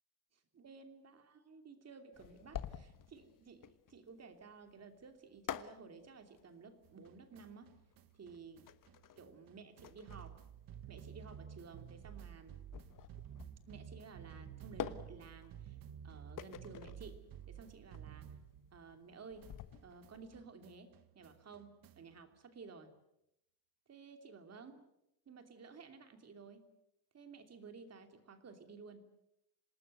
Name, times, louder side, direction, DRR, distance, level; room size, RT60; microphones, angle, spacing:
voice 1, 0.5-7.7 8.1-8.7 9.2-10.4 10.9-12.6 13.7-15.8 16.0-18.3 18.7-19.5 19.8-22.9 23.9-24.9 25.3-26.7 27.1-29.0, right 4 dB, 35° right, 7 dB, 3.0 m, -54 dB
sound 1, 2.1-20.4, left 9 dB, 50° left, 1.3 m, -49 dB
sound 2, 6.8-19.1 19.4-22.2, right 9 dB, 55° right, 1.3 m, -53 dB
27.5 x 19.0 x 7.9 m, 0.82 s
cardioid pair, 140°, 42 cm